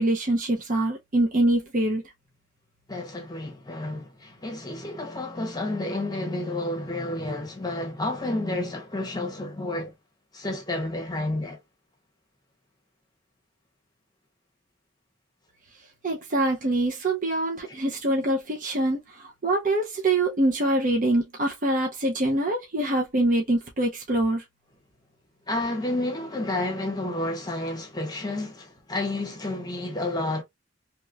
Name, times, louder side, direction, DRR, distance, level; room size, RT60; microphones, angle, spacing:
voice 1, 0.0-2.0 16.0-24.4, right 1 dB, 45° right, 0.6 m, -24 dB
voice 2, 2.9-9.9 10.3-11.6 17.7-17.8 25.5-30.4, left 2 dB, 20° left, 0.8 m, -30 dB
2.9 x 2.9 x 2.3 m
head